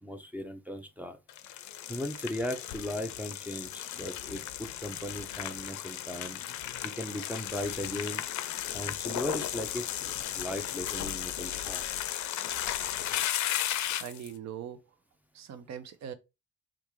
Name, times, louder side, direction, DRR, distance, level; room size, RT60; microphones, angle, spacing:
voice 1, 0.0-1.2 1.9-6.4 6.8-8.3 8.7-11.9, left 1 dB, 5° right, 0.5 m, -37 dB
sound 1, 1.3-14.3, left 12 dB, 70° left, 0.5 m, -35 dB
voice 2, 14.0-14.8 15.3-16.1, right 9 dB, 60° right, 0.6 m, -41 dB
3.4 x 2.5 x 3.0 m
cardioid pair, 90°, 30 cm